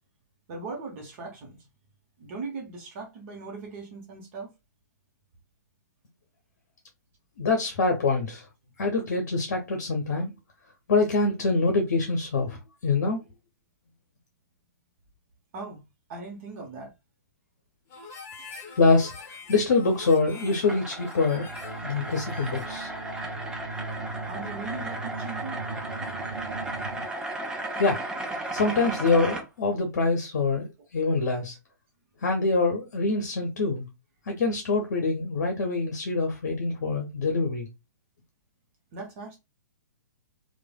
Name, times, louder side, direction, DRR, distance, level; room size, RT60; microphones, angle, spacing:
voice 1, 0.5-1.6 2.2-4.5 15.5-15.8 16.1-16.9 18.4-18.5 24.3-25.6 38.9-39.4, right 3 dB, 40° right, 0.8 m, -39 dB
voice 2, 7.4-8.4 8.8-10.3 10.9-13.2 18.8-21.5 21.8-22.9 27.8-28.0 28.3-31.5 32.2-33.9 34.3-37.7, left 3 dB, 60° left, 0.7 m, -25 dB
Harmonica, 17.9-22.8, left 4 dB, 25° left, 0.9 m, -44 dB
sound 1, 19.9-29.4, right 2 dB, 10° right, 0.5 m, -35 dB
sound 2, 21.4-27.1, right 3 dB, 75° right, 0.4 m, -39 dB
3.1 x 2.2 x 2.2 m
figure-of-eight pair, 120°, 10 cm